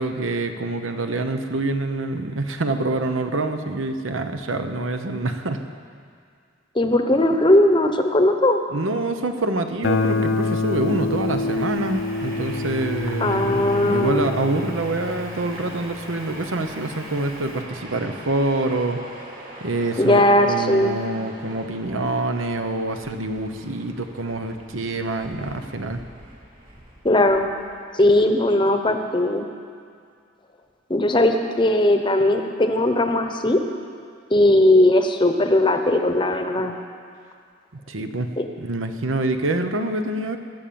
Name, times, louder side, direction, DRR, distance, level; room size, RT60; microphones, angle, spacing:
voice 1, 0.0-5.6 8.7-19.0 19.6-26.0 37.7-38.3 38.6-40.4, right 2 dB, 90° right, 7 dB, 1.0 m, -26 dB
voice 2, 6.7-8.6 13.2-14.3 20.0-21.0 27.0-27.5 27.9-29.5 30.9-33.6 34.3-36.8 38.4-38.5, left 1 dB, 25° left, 6 dB, 0.8 m, -18 dB
Guitar, 9.8-16.6, left 3 dB, 90° left, 0.8 m, -27 dB
Train, 10.7-28.3, right 1 dB, 45° right, 2.7 m, -42 dB
19.5 x 7.2 x 7.1 m, 2.2 s
head